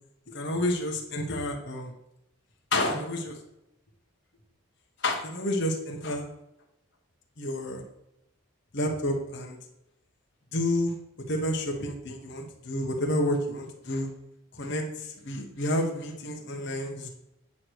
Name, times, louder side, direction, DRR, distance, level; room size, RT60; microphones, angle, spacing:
voice 1, 0.3-1.9 2.7-3.4 5.0-6.3 7.4-7.8 8.7-9.6 10.5-11.0 11.3-14.1 14.5-17.1, left 1 dB, 55° left, 1 dB, 1.1 m, -30 dB
8.6 x 3.1 x 6.3 m, 0.85 s
head